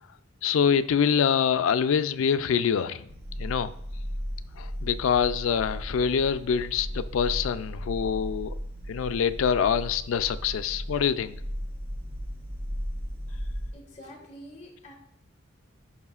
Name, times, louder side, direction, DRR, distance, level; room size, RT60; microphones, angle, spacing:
voice 1, 0.4-3.1 3.4-3.7 4.6-8.6 8.9-11.4, left 7 dB, 80° left, 12 dB, 0.3 m, -25 dB
sound 1, 3.1-13.7, equal, 75° right, 1.2 m, -36 dB
voice 2, 13.7-14.9, equal, 35° left, -2 dB, 1.6 m, -46 dB
11.0 x 4.9 x 2.4 m, 0.70 s
head